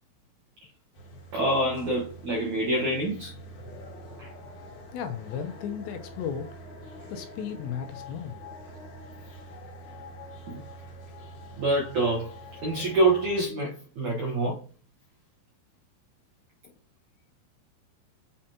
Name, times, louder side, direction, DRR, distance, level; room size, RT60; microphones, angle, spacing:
sound 1, 0.9-13.5, left 1 dB, 55° left, 2.7 m, -45 dB
voice 1, 1.3-3.3 4.2-4.3 10.5-10.6 11.6-12.3 12.6-14.6, right 2 dB, 80° right, 1.7 m, -26 dB
voice 2, 4.9-6.5 7.1-8.4, left 7 dB, 75° left, 2.8 m, -35 dB
8.5 x 5.0 x 2.8 m
omnidirectional pair, 5.4 m